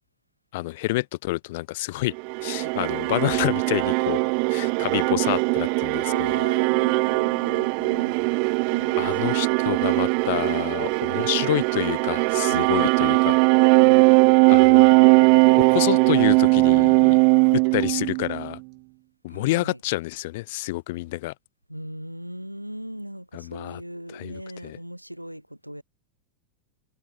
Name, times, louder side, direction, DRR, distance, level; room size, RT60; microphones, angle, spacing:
voice 1, 0.5-2.1 2.4-4.2 4.5-6.3 9.0-13.4 14.5-15.1 15.7-17.2 17.5-18.6 19.2-21.3 23.3-23.8 24.1-24.8, left 20 dB, 50° left, 2.1 m, -28 dB
sound 1, 2.2-18.5, right 40 dB or more, 45° right, 0.9 m, -20 dB
voice 2, 6.1-8.2 8.7-9.6 12.5-12.7 13.8-14.2 19.3-19.8 21.7-25.8, equal, 90° right, 2.5 m, -38 dB
figure-of-eight pair, 90°, 0 cm